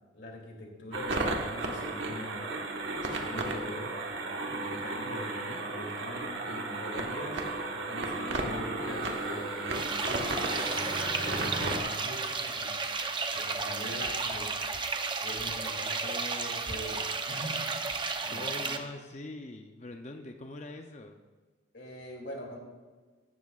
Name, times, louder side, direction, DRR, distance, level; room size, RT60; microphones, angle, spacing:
voice 1, 0.1-2.4 3.0-3.9 4.5-7.4 7.7-10.3 10.7-12.9 13.3-14.5 15.2-17.7 18.2-18.8 20.1-20.2 21.7-22.6, left 1 dB, 65° left, 1 dB, 2.7 m, -43 dB
sound 1, 0.9-11.8, right 2 dB, 80° right, 1.3 m, -34 dB
voice 2, 5.0-5.6 13.9-14.2 18.3-21.2, left 2 dB, 35° left, 4 dB, 0.6 m, -43 dB
sound 2, 8.5-12.0, equal, 5° right, 3.8 m, -44 dB
sound 3, 9.7-18.8, right 4 dB, 25° right, 0.7 m, -33 dB
15.5 x 12.5 x 2.4 m, 1.4 s
head